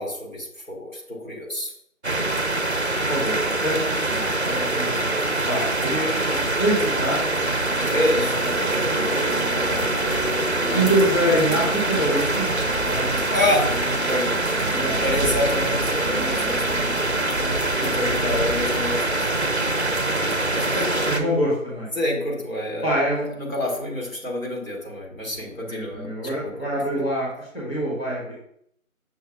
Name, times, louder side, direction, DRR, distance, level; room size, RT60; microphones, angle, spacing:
voice 1, 0.0-1.7 7.9-9.2 9.5-9.9 13.3-13.7 14.0-14.4 15.0-16.8 17.6-19.3 20.5-21.1 21.9-26.7, left 1 dB, 65° left, -3 dB, 1.8 m, -28 dB
sound 1, 2.0-21.2, right 2 dB, 55° right, 0.5 m, -24 dB
voice 2, 3.6-5.1 5.5-8.3 8.6-9.2 10.7-12.5 12.8-13.2 13.6-13.7 14.7-15.3 17.4-17.6 17.9-18.4 21.1-21.9 22.8-23.5 25.6-28.3, right 1 dB, 45° left, -6 dB, 1.3 m, -26 dB
sound 2, 8.3-21.7, equal, 90° left, 1.1 m, -37 dB
6.3 x 2.3 x 3.5 m, 0.69 s
figure-of-eight pair, 180°, 42 cm